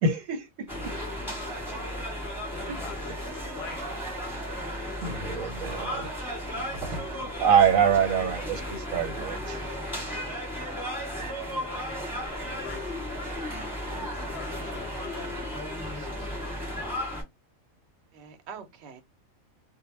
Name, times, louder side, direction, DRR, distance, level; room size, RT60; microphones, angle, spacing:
voice 1, 0.0-0.7 2.7-2.8 5.0-6.1 6.6-7.1 7.4-9.8 16.0-16.1, right 7 dB, 85° right, 1.1 m, -25 dB
sound 1, 0.7-17.2, equal, ahead, 1.0 m, -34 dB
voice 2, 1.4-1.8 6.9-7.5 18.1-19.0, right 6 dB, 65° right, 0.8 m, -45 dB
voice 3, 2.5-4.0 10.4-11.9 12.6-13.4 13.9-15.3, left 6 dB, 60° left, 0.7 m, -46 dB
2.1 x 2.1 x 3.1 m
omnidirectional pair, 1.4 m